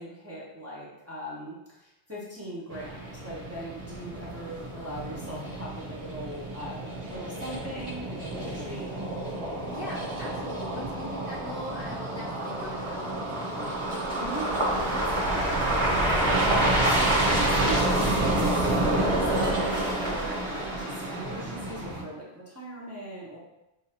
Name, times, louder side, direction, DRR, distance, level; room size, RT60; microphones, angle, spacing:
voice 1, 0.0-8.9 14.1-23.4, right 1 dB, 15° right, -6 dB, 0.8 m, -39 dB
sound 1, 2.7-22.0, right 1 dB, 75° right, 1.3 m, -28 dB
voice 2, 9.5-13.5, left 1 dB, 55° left, -4 dB, 1.1 m, -41 dB
6.4 x 2.6 x 2.8 m, 0.93 s
omnidirectional pair, 1.1 m